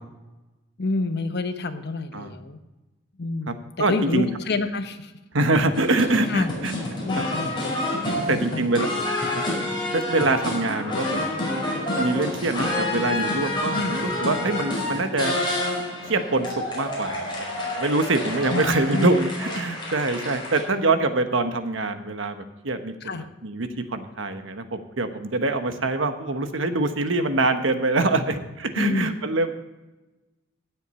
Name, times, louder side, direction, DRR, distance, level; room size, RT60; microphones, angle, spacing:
voice 1, 0.8-2.6 3.2-3.6 3.9-5.1 6.3-6.5 7.0-7.5 8.0-8.7 13.7-14.0 18.5-19.1 23.0-23.2 28.7-29.1, left 3 dB, 60° left, 8 dB, 1.0 m, -28 dB
voice 2, 3.8-4.3 5.3-6.7 7.1-7.2 8.3-8.9 9.3-9.4 9.9-11.2 11.9-15.4 16.0-16.5 16.7-29.5, right 2 dB, 75° right, 8 dB, 1.2 m, -24 dB
sound 1, 5.7-20.6, left 1 dB, 25° left, 5.0 m, -28 dB
16.5 x 8.1 x 4.2 m, 1.1 s
head